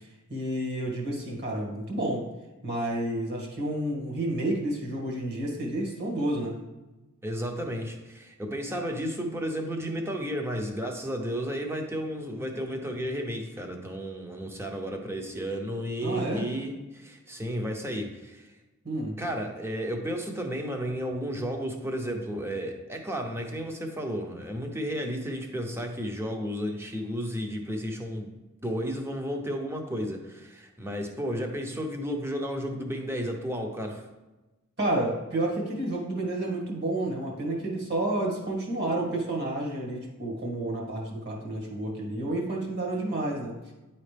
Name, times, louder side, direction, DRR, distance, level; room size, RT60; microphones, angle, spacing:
voice 1, 0.0-2.3 2.6-6.6 16.0-16.5 18.8-19.1 34.8-43.6, right 1 dB, 55° right, -1 dB, 1.9 m, -30 dB
voice 2, 7.2-18.6 19.2-28.3 28.6-34.0, equal, 10° right, 3 dB, 0.7 m, -33 dB
9.7 x 4.2 x 3.4 m, 1.1 s
head